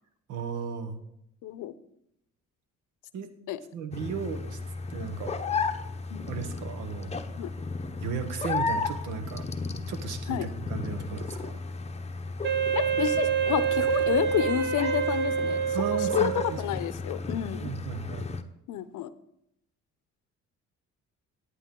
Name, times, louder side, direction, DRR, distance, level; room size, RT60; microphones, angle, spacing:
voice 1, 0.3-1.0 3.1-3.3 3.7-4.6 4.9-5.4 6.3-7.1 8.0-9.5 9.9-11.6 15.7-16.8 17.6-18.3, right 6 dB, 85° right, 8 dB, 1.1 m, -35 dB
voice 2, 1.4-1.7 3.5-3.6 6.1-6.3 7.4-7.5 10.3-10.5 12.7-15.6 15.9-16.3 16.6-17.7 18.7-19.1, left 12 dB, 80° left, 15 dB, 0.6 m, -30 dB
sound 1, 3.9-18.4, left 4 dB, 20° left, 0.7 m, -34 dB
Wind instrument woodwind instrument, 12.4-16.7, right 7 dB, 35° right, 0.8 m, -27 dB
11.0 x 8.9 x 3.7 m, 0.78 s
cardioid pair, 90°, 30 cm